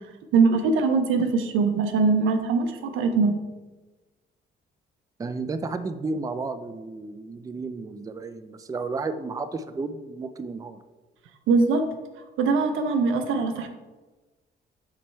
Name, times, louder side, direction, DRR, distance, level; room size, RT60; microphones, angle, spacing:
voice 1, 0.3-3.3 11.5-11.9 12.4-13.7, right 4 dB, 85° right, 7 dB, 0.7 m, -22 dB
voice 2, 5.2-10.8, right 3 dB, 20° right, 11 dB, 0.4 m, -32 dB
7.3 x 3.2 x 4.5 m, 1.2 s
cardioid pair, 90°, 20 cm